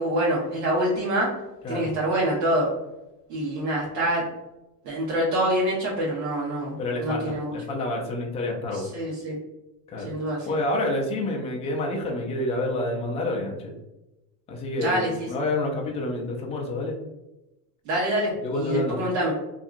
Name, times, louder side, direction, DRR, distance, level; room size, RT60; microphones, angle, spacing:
voice 1, 0.0-1.3 1.7-2.7 3.3-4.3 4.8-7.5 8.7-9.4 10.0-10.5 14.8-15.3 17.8-19.3, right 1 dB, 70° right, -6 dB, 1.1 m, -26 dB
voice 2, 6.8-8.9 9.9-10.1 10.5-13.7 14.5-16.9 18.4-19.0, left 1 dB, 15° left, -1 dB, 0.3 m, -28 dB
2.7 x 2.4 x 2.4 m, 0.95 s
supercardioid pair, 110°, 48 cm